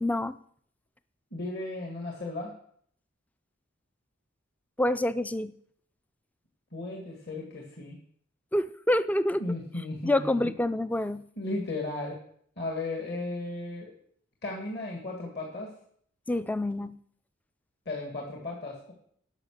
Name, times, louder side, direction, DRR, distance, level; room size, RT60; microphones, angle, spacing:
voice 1, 0.0-0.4 4.8-5.5 8.5-9.4 10.0-11.2 16.3-16.9, left 1 dB, 5° left, 14 dB, 0.3 m, -27 dB
voice 2, 1.3-2.5 6.7-8.0 9.4-10.5 11.4-12.2 12.6-13.9 14.4-15.7 17.9-18.9, left 2 dB, 55° left, 0 dB, 2.0 m, -35 dB
10.5 x 5.9 x 6.4 m, 0.62 s
head